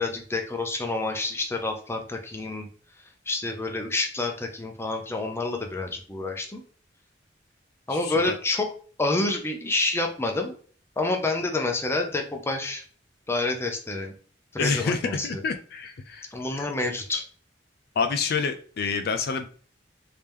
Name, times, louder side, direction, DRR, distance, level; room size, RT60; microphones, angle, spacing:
voice 1, 0.0-2.7 3.3-6.6 7.9-8.7 9.0-10.5 11.0-12.8 13.3-14.1 14.5-15.4 16.3-17.2, left 2 dB, 15° left, 3 dB, 0.6 m, -28 dB
voice 2, 7.9-8.4 14.6-16.3 16.6-16.7 18.0-19.5, left 5 dB, 60° left, 7 dB, 0.4 m, -28 dB
3.3 x 2.8 x 3.5 m, 0.43 s
head